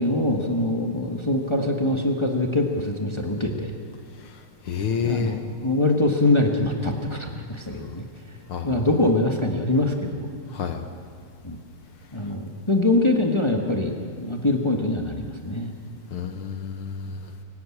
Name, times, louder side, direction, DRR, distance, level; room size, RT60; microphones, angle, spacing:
voice 1, 0.0-3.7 5.0-8.0 8.6-10.3 11.4-11.6 12.1-15.7, left 2 dB, 30° left, 2 dB, 0.5 m, -23 dB
voice 2, 4.6-5.4 8.5-8.9 10.5-10.8 16.1-17.3, left 7 dB, 60° left, 7 dB, 1.6 m, -29 dB
25.0 x 16.0 x 8.7 m, 2.1 s
omnidirectional pair, 3.5 m